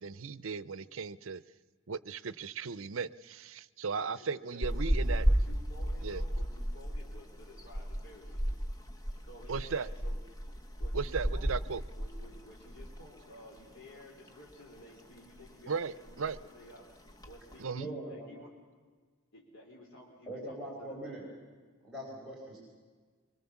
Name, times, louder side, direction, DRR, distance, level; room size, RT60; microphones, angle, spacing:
voice 1, 0.0-1.4 1.9-5.3 6.0-6.2 9.5-9.9 10.9-11.8 15.7-16.4 17.6-17.9, right 5 dB, 70° right, 17 dB, 0.6 m, -36 dB
voice 2, 4.0-8.6 9.3-10.2 10.8-11.6 12.0-16.9 17.3-18.5 19.3-21.0, left 1 dB, 60° left, -3 dB, 3.6 m, -53 dB
sound 1, 4.6-13.1 13.4-13.6 14.0-14.8 15.2-15.5 15.8-16.5 17.1-17.6, equal, 15° left, 1.2 m, -33 dB
voice 3, 17.7-18.3 20.3-21.2 21.8-22.6, right 1 dB, ahead, -6 dB, 4.6 m, -41 dB
24.5 x 22.5 x 7.2 m, 1.5 s
head